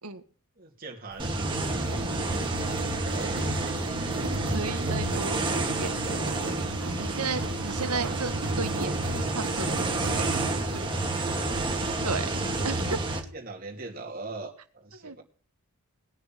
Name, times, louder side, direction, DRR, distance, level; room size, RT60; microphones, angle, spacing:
voice 1, 0.6-1.5 1.9-2.1 2.7-3.4 11.2-11.7 13.3-15.2, right 3 dB, 40° right, -1 dB, 2.7 m, -41 dB
Engine, 1.1-12.8, right 4 dB, 70° right, 1.0 m, -39 dB
sound 1, 1.2-13.2, right 2 dB, 20° right, 2.3 m, -29 dB
voice 2, 4.5-6.1 7.0-9.0 9.3-10.1 12.0-13.2 15.0-15.1, right 4 dB, 85° right, 10 dB, 1.6 m, -34 dB
19.5 x 6.7 x 7.5 m, 0.43 s
head